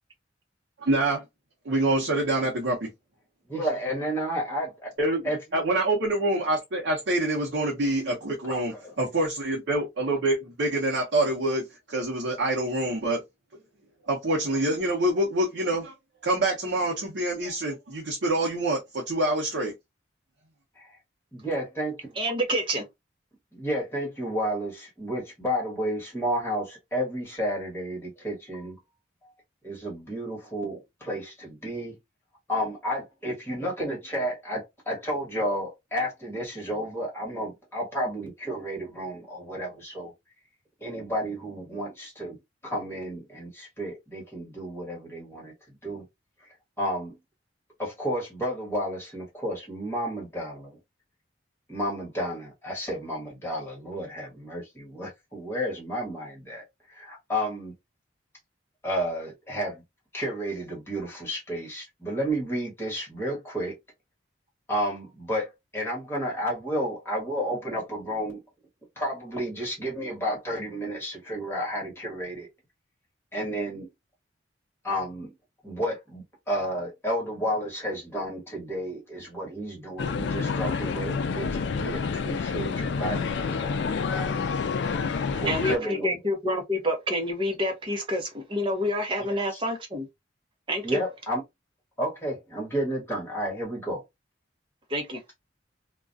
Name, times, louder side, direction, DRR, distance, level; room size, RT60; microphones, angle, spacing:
voice 1, 0.8-1.2 1.6-2.9 5.0-5.2 5.5-13.2 14.1-15.9 16.2-19.7, right 1 dB, 70° right, 0.7 m, -26 dB
voice 2, 3.5-4.9 5.2-5.4 8.4-8.9 20.8-20.9 21.3-22.2 23.5-28.8 29.2-29.3 29.6-32.0 32.5-40.1 40.8-42.4 42.6-45.5 45.8-46.1 46.4-47.2 47.8-50.8 51.7-57.7 58.8-59.8 60.1-63.8 64.7-68.4 69.0-72.5 73.3-73.9 74.8-75.3 75.6-84.6 85.3-86.1 89.3-89.4 90.8-91.4 92.0-94.0, equal, 15° left, 1.2 m, -32 dB
voice 3, 22.2-22.9 85.4-90.1 90.7-91.0 94.9-95.2, equal, 25° right, 0.7 m, -28 dB
sound 1, 80.0-85.8, left 5 dB, 65° left, 0.3 m, -28 dB
2.3 x 2.2 x 2.5 m
head